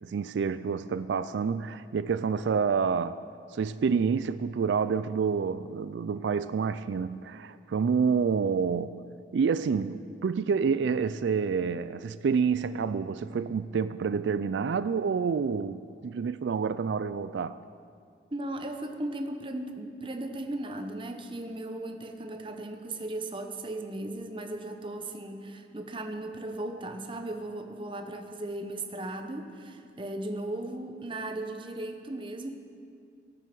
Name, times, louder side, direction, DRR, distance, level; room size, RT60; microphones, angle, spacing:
voice 1, 0.0-3.2 3.5-9.0 9.3-17.6, right 6 dB, 85° right, 13 dB, 0.3 m, -28 dB
voice 2, 18.3-32.5, right 1 dB, 30° right, 5 dB, 1.0 m, -37 dB
16.5 x 9.2 x 6.1 m, 2.3 s
head